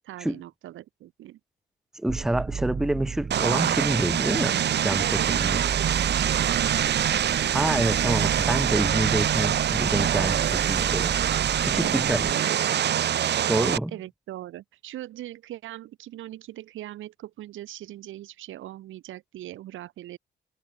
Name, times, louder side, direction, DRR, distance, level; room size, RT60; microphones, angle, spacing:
voice 1, 0.0-1.4 5.0-6.9 13.9-20.2, right 14 dB, 80° right, 2.5 m, -40 dB
voice 2, 2.0-5.6 7.5-11.2 11.6-12.5 13.5-13.9, right 1 dB, ahead, 0.5 m, -27 dB
sound 1, 2.1-12.3, right 6 dB, 40° right, 1.8 m, -34 dB
Vehicle, 3.3-13.8, right 10 dB, 60° right, 1.3 m, -24 dB
cardioid pair, 90°, 20 cm